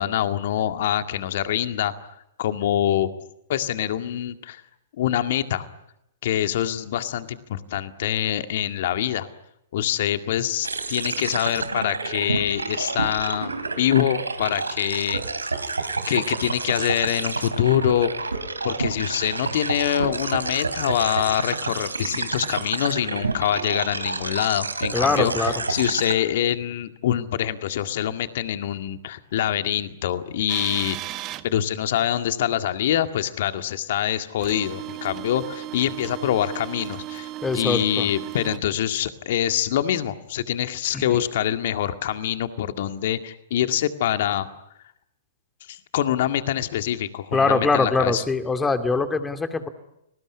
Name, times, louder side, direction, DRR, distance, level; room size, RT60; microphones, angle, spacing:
voice 1, 0.0-1.9 2.4-3.1 3.5-4.6 5.0-5.7 6.2-9.3 9.7-15.2 16.1-18.1 18.6-31.0 31.4-37.3 37.5-44.5 45.7-48.2, left 11 dB, 55° left, 9 dB, 2.0 m, -25 dB
sound 1, 10.6-26.1, right 3 dB, 85° right, 3.1 m, -29 dB
voice 2, 24.9-25.6 37.4-38.1 40.9-41.0 47.3-49.7, left 3 dB, 10° left, 8 dB, 2.6 m, -23 dB
sound 2, 30.5-31.5 34.4-38.6, right 15 dB, 30° right, 1.5 m, -35 dB
30.0 x 20.5 x 9.7 m, 0.83 s
figure-of-eight pair, 115°, 0 cm